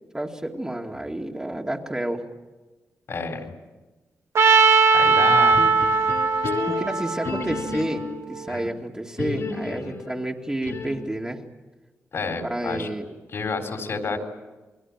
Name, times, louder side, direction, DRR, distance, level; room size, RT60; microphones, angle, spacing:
voice 1, 0.1-2.2 6.7-11.4 12.4-13.1, right 1 dB, 15° right, 1 dB, 2.4 m, -30 dB
voice 2, 3.1-3.5 4.9-5.6 8.5-8.7 9.7-10.0 12.1-12.9 13.3-14.2, left 4 dB, 60° left, 4 dB, 4.1 m, -30 dB
Trumpet, 4.3-8.4, right 4 dB, 65° right, 1.7 m, -19 dB
sound 1, 5.5-8.3 9.2-11.2, left 5 dB, 75° left, 3.0 m, -32 dB
29.0 x 21.5 x 7.5 m, 1.2 s
cardioid pair, 90°, 5 cm